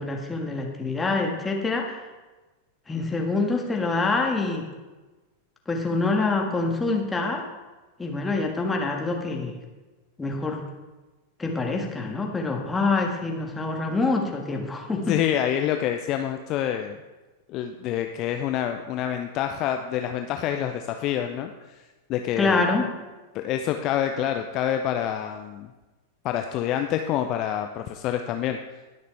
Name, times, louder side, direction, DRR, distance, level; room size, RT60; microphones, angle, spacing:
voice 1, 0.0-2.0 2.9-4.7 5.7-7.4 8.0-9.5 10.2-10.7 11.4-15.2 22.4-22.9, left 3 dB, 10° left, 1 dB, 1.8 m, -26 dB
voice 2, 15.1-17.0 17.5-21.8 22.1-22.7 23.3-25.7 26.2-28.6, left 10 dB, 40° left, 6 dB, 0.6 m, -27 dB
20.0 x 6.7 x 3.4 m, 1.2 s
figure-of-eight pair, 90°, 0 cm